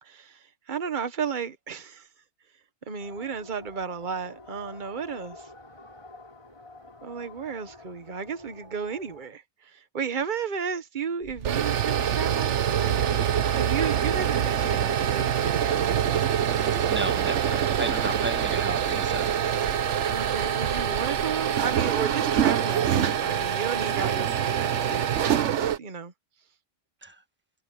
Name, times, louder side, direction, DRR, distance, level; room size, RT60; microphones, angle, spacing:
voice 1, 0.0-2.1 2.9-5.5 7.0-12.9 13.5-15.6 20.1-26.1, right 6 dB, 45° right, 1.3 m, -33 dB
sound 1, 3.0-9.3, left 2 dB, 25° left, 4.5 m, -48 dB
sound 2, 11.2-25.8, right 9 dB, 80° right, 1.2 m, -25 dB
voice 2, 16.7-19.4 27.0-27.2, right 2 dB, 10° right, 1.4 m, -34 dB
omnidirectional pair, 1.2 m